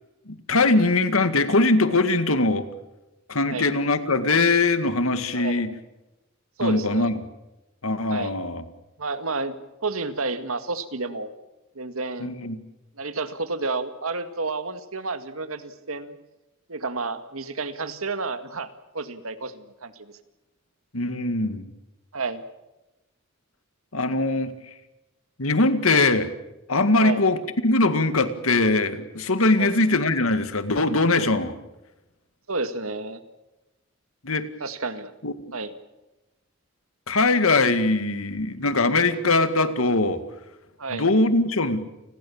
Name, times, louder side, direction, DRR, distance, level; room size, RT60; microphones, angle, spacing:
voice 1, 0.3-2.7 3.3-5.7 6.6-7.2 7.8-8.6 12.2-12.6 20.9-21.7 23.9-24.5 25.4-26.3 26.7-31.5 34.2-34.5 35.2-35.3 37.1-40.2 40.9-41.8, left 2 dB, 85° left, 10 dB, 2.1 m, -21 dB
voice 2, 5.3-5.6 6.6-7.1 8.1-8.3 9.0-9.6 9.8-11.3 11.8-12.4 13.0-16.2 16.7-20.1 22.1-22.4 27.0-27.2 29.6-29.8 32.5-33.2 34.6-35.1 35.5-35.7 40.8-41.1, right 3 dB, 90° right, 9 dB, 2.0 m, -30 dB
30.0 x 21.0 x 7.2 m, 1.0 s
head